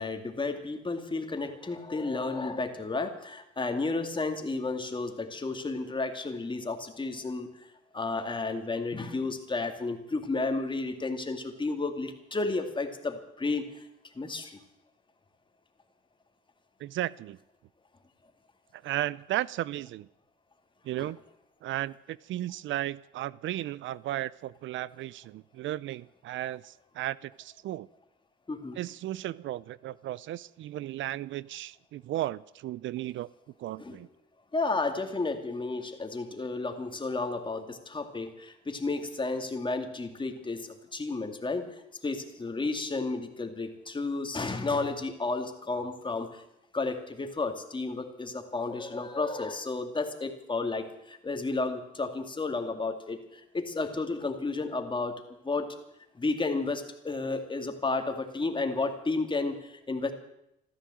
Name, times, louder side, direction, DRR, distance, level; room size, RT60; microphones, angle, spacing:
voice 1, 0.0-7.5 7.9-13.7 14.2-14.6 21.0-21.1 28.5-28.8 33.8-34.0 34.5-41.8 42.0-46.4 46.7-53.2 53.5-55.7 56.2-60.1, left 3 dB, 25° left, 6 dB, 2.3 m, -32 dB
voice 2, 16.8-17.4 18.7-20.1 20.8-21.2 21.6-27.9 28.8-33.3 33.6-34.1, right 14 dB, 75° right, 21 dB, 0.5 m, -35 dB
14.5 x 13.0 x 7.7 m, 0.82 s
cardioid pair, 90°, 20 cm